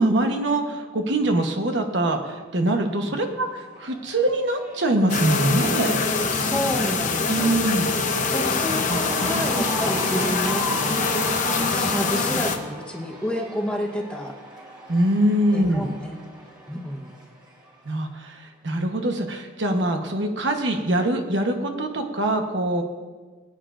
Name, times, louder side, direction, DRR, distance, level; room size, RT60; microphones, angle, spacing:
voice 1, 0.0-6.0 7.3-7.9 8.9-9.6 14.9-15.9 17.8-22.8, right 1 dB, 65° right, 4 dB, 1.1 m, -23 dB
Cheering / Crowd, 2.8-18.1, right 1 dB, 20° right, 3.0 m, -38 dB
sound 1, 5.1-12.6, left 4 dB, 40° left, 0.9 m, -24 dB
voice 2, 5.4-5.9 6.3-7.5 8.3-11.1 11.7-14.3 15.5-16.2 16.7-17.1, equal, 5° left, 0 dB, 1.0 m, -30 dB
21.0 x 9.2 x 2.6 m, 1.4 s
head